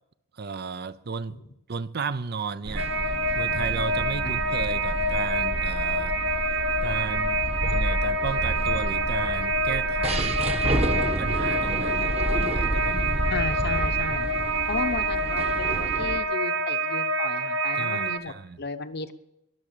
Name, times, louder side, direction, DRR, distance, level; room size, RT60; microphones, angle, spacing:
voice 1, 0.3-1.4 1.7-6.2 6.8-7.4 7.7-10.4 11.2-13.4 17.7-18.6, right 5 dB, 50° right, 0.7 m, -34 dB
sound 1, 2.6-16.2, right 1 dB, 30° right, 1.2 m, -30 dB
sound 2, 2.8-18.2, right 2 dB, 80° right, 1.2 m, -27 dB
voice 2, 13.3-14.3 14.7-19.1, left 3 dB, 55° left, 0.9 m, -34 dB
21.5 x 7.4 x 6.8 m
head